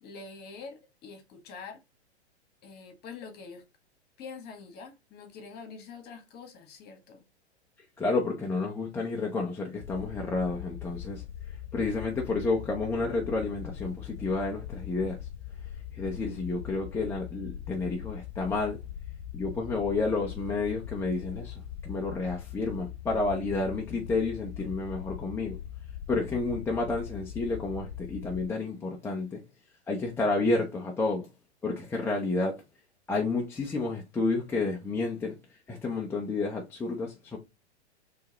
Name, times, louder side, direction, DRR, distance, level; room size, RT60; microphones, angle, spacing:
voice 1, 0.0-1.8 2.6-3.6 4.2-7.2, left 5 dB, 30° left, 1.4 m, -45 dB
voice 2, 8.0-11.2 11.7-15.2 15.9-18.8 19.3-25.6 26.1-29.4 29.9-31.3 31.6-32.6 33.1-35.4 35.7-37.4, left 3 dB, 5° left, 0.5 m, -30 dB
sound 1, 9.8-28.5, left 10 dB, 70° left, 0.5 m, -41 dB
4.5 x 3.3 x 2.8 m
hypercardioid pair, 120°, 34 cm